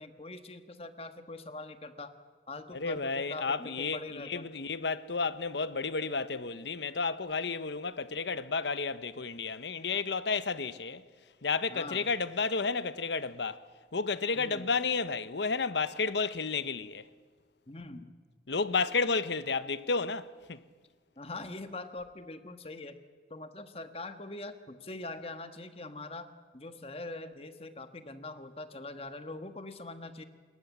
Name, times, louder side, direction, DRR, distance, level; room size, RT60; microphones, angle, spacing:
voice 1, 0.0-2.1 2.5-4.4 11.7-12.0 14.4-14.7 17.7-18.1 21.2-23.0 23.3-26.3 26.5-30.2, left 2 dB, 35° left, 1.4 m, -43 dB
voice 2, 2.7-11.0 11.4-13.6 13.9-17.0 18.5-20.6, left 4 dB, 85° left, 1.0 m, -32 dB
27.0 x 21.5 x 7.3 m
head